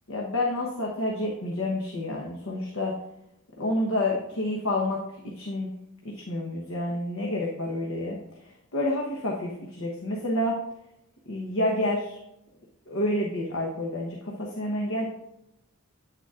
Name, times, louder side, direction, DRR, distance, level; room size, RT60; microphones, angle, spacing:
voice 1, 0.1-3.0 3.6-5.7 6.0-8.2 8.7-10.6 11.3-12.2 12.9-15.1, left 1 dB, 75° left, -2 dB, 1.0 m, -29 dB
8.9 x 6.8 x 2.4 m, 0.85 s
head